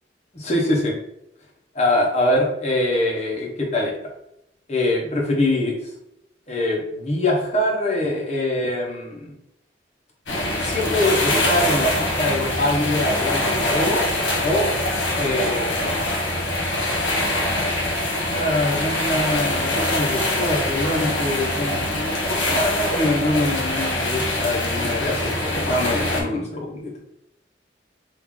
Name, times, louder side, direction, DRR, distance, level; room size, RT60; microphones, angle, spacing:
voice 1, 0.3-0.9 1.7-3.9 4.7-5.7 6.5-9.3 10.6-14.2 14.4-14.7 15.2-16.1 17.5-17.7 18.3-26.9, left 1 dB, 35° left, -1 dB, 0.8 m, -24 dB
sound 1, 10.3-26.2, left 1 dB, 85° left, 1.0 m, -23 dB
3.2 x 2.4 x 3.6 m, 0.81 s
head